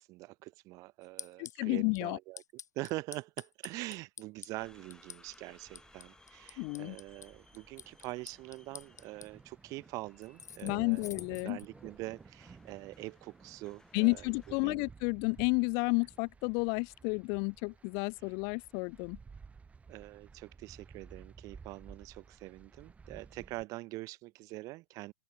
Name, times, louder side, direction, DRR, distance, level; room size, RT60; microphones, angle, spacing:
voice 1, 0.0-2.4 2.7-11.1 11.4-14.9 18.2-18.3 19.9-25.1, right 21 dB, 40° right, 1.5 m, -44 dB
sound 1, 1.0-1.6 2.0-2.1 2.4-4.5 4.9-5.4 5.8-7.3 7.5-9.3 10.2-11.7, left 8 dB, 70° left, 2.8 m, -47 dB
voice 2, 1.4-2.2 6.6-7.0 10.6-11.6 13.9-19.2, left 37 dB, 40° left, 1.2 m, -31 dB
sound 2, 4.6-14.7, left 2 dB, 5° left, 5.7 m, -63 dB
sound 3, 5.7-23.6, right 5 dB, 15° right, 4.0 m, -56 dB
open air
figure-of-eight pair, 100°, 9 cm